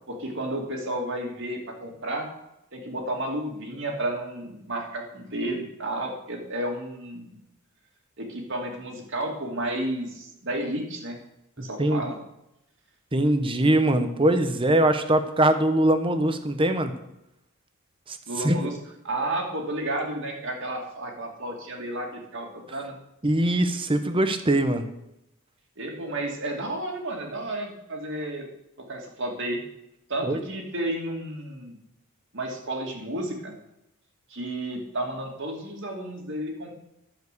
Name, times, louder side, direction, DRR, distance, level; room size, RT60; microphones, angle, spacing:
voice 1, 0.1-2.3 2.7-7.4 8.2-11.2 11.6-12.2 18.3-18.8 19.0-22.9 25.8-28.4 28.8-29.6 30.1-31.8 32.3-33.5 34.3-36.7, right 1 dB, 60° right, 1 dB, 2.6 m, -32 dB
voice 2, 11.6-12.0 13.1-16.9 18.1-18.2 18.4-18.6 23.2-24.9 30.2-30.4, right 1 dB, 25° right, 9 dB, 1.0 m, -22 dB
11.0 x 7.4 x 6.8 m, 0.85 s
head